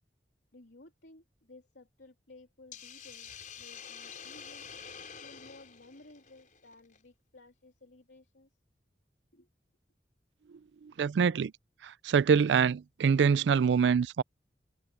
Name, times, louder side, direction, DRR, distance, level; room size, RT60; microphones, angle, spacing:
voice 1, 0.5-4.7 5.2-8.5 9.3-9.5, left 2 dB, 80° left, 3.2 m, -56 dB
Hiss, 2.7-7.0, left 7 dB, 50° left, 4.6 m, -47 dB
voice 2, 10.8-11.5 11.8-14.2, right 6 dB, 85° right, 0.4 m, -25 dB
head